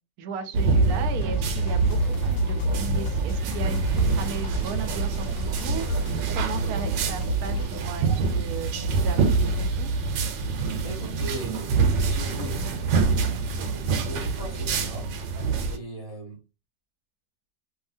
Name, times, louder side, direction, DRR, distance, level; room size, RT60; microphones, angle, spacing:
voice 1, 0.2-9.9, right 6 dB, 70° right, 8 dB, 1.0 m, -36 dB
sound 1, 0.5-15.8, right 4 dB, 85° right, 1.2 m, -26 dB
sound 2, 1.2-7.7, equal, 90° left, 1.3 m, -29 dB
voice 2, 10.4-12.8 13.6-15.1 15.7-16.4, right 1 dB, 35° left, -1 dB, 0.6 m, -39 dB
2.8 x 2.6 x 2.5 m, 0.30 s
omnidirectional pair, 1.9 m